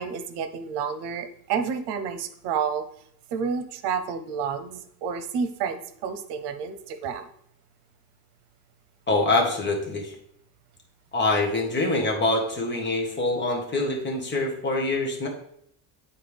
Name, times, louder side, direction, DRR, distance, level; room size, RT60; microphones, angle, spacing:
voice 1, 0.0-2.8 3.3-7.3, right 6 dB, 85° right, 10 dB, 0.8 m, -30 dB
voice 2, 9.1-10.1 11.1-15.3, left 2 dB, 25° left, 0 dB, 1.4 m, -25 dB
9.8 x 4.3 x 3.5 m, 0.69 s
cardioid pair, 155°, 40 cm